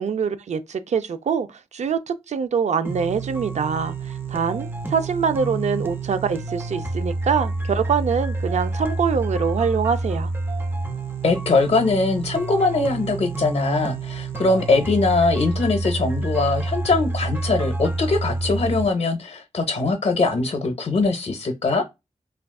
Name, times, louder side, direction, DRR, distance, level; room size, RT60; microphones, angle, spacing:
voice 1, 0.0-1.5 1.7-3.9 4.3-10.3, right 6 dB, 90° right, 0.4 m, -24 dB
sound 1, 2.8-18.9, right 2 dB, 20° right, 0.4 m, -28 dB
voice 2, 11.2-21.8, left 3 dB, 60° left, 0.5 m, -21 dB
3.5 x 2.4 x 2.2 m
wide cardioid pair, 105°, 11 cm